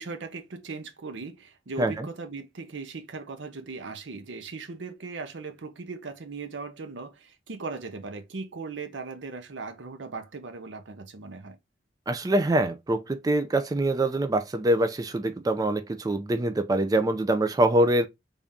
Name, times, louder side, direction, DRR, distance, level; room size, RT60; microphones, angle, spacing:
voice 1, 0.0-11.6, right 4 dB, 85° right, 0.7 m, -38 dB
voice 2, 12.1-18.1, right 1 dB, 20° right, 0.4 m, -24 dB
3.5 x 2.7 x 3.5 m
head